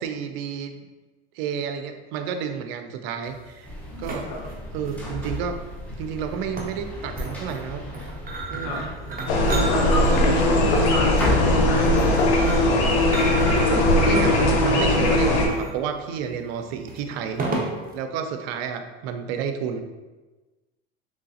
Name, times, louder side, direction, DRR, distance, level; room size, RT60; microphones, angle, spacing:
voice 1, 0.0-0.8 1.3-3.7 4.0-4.3 4.7-5.6 6.0-8.1 8.5-8.9 9.7-10.0 13.7-17.4 17.9-19.8, right 7 dB, 70° right, 7 dB, 0.5 m, -30 dB
sound 1, 3.2-18.0, right 3 dB, 25° right, 0.7 m, -35 dB
sound 2, 3.6-12.8, left 1 dB, 5° left, 0.8 m, -34 dB
sound 3, 9.3-15.5, left 1 dB, 85° left, 0.8 m, -19 dB
voice 2, 9.7-12.4, left 2 dB, 60° left, -2 dB, 1.0 m, -30 dB
3.7 x 3.1 x 2.7 m, 1.2 s
supercardioid pair, 95°, 32 cm